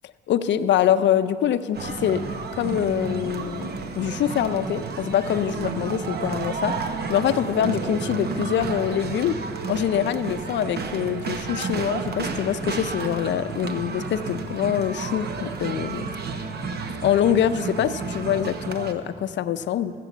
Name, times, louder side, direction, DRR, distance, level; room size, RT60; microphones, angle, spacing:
voice 1, 0.3-2.2 2.5-6.7 7.1-9.4 9.7-16.1 17.0-19.9, left 10 dB, 65° left, 12 dB, 0.5 m, -24 dB
sound 1, 1.7-18.9, right 4 dB, 55° right, 1.0 m, -31 dB
14.0 x 7.5 x 8.2 m, 2.4 s
cardioid pair, 90°, 20 cm